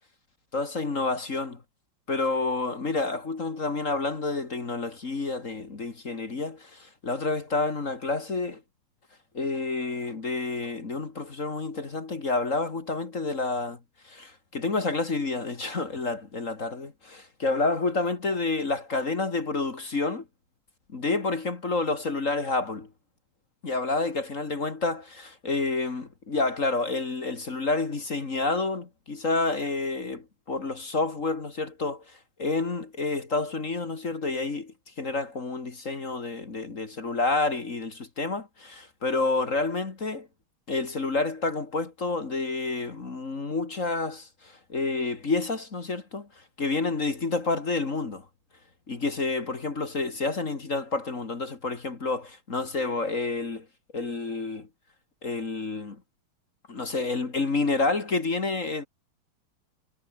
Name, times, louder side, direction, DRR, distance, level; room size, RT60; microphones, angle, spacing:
voice 1, 0.5-1.6 2.1-8.6 9.3-13.8 14.0-20.2 20.9-22.9 23.6-32.0 32.4-40.3 40.7-46.3 46.6-48.2 48.9-53.7 53.9-54.7 55.2-56.0 56.7-58.9, left 3 dB, 35° left, 2.4 m, -29 dB
omnidirectional pair, 2.4 m